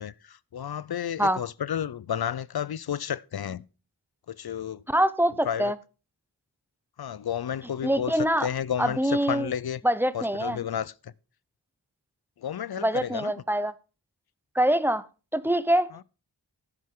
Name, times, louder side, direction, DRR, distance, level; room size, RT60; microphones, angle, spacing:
voice 1, 0.0-3.6 4.4-4.8 5.4-5.7 7.0-9.8 10.1-11.1 12.4-13.3, left 9 dB, 60° left, 0.5 m, -32 dB
voice 2, 4.9-5.8 7.8-8.5 8.8-9.5 9.8-10.6 12.8-13.7 14.5-15.1 15.3-16.0, right 1 dB, 5° right, 0.6 m, -24 dB
10.0 x 9.6 x 3.7 m
wide cardioid pair, 55°, 42 cm